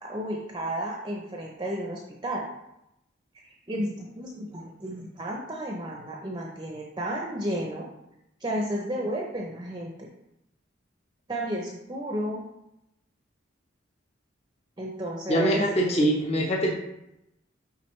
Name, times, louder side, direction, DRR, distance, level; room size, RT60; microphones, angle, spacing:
voice 1, 0.0-2.5 3.7-7.9 8.4-10.1 11.3-12.5 14.8-16.3, right 1 dB, 20° right, -1 dB, 0.6 m, -32 dB
voice 2, 15.3-16.8, right 1 dB, 35° left, -1 dB, 0.8 m, -23 dB
8.9 x 3.7 x 3.1 m, 0.86 s
head